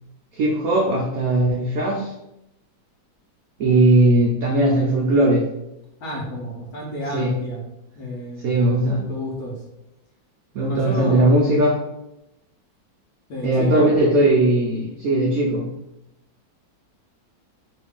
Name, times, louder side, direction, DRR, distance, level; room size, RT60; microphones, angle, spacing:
voice 1, 0.3-2.1 3.6-5.5 7.1-7.3 8.4-9.0 10.5-11.8 13.4-15.7, right 1 dB, 90° right, -2 dB, 0.7 m, -18 dB
voice 2, 6.0-7.6 8.0-8.5 8.8-9.5 10.6-11.3 13.3-14.0, equal, 60° left, -2 dB, 1.1 m, -30 dB
3.1 x 2.5 x 3.5 m, 0.88 s
omnidirectional pair, 2.1 m